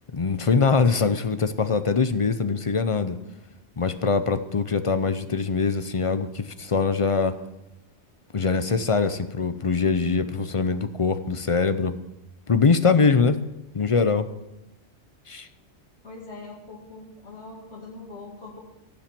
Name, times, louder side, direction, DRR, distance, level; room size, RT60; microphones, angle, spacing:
voice 1, 0.1-3.2 3.8-7.4 8.3-12.0 12.5-13.4 13.7-14.3 15.3-15.5, left 5 dB, 35° left, 11 dB, 0.6 m, -23 dB
voice 2, 16.0-18.6, left 3 dB, 70° left, -2 dB, 2.5 m, -42 dB
17.0 x 7.3 x 6.0 m, 0.95 s
omnidirectional pair, 1.2 m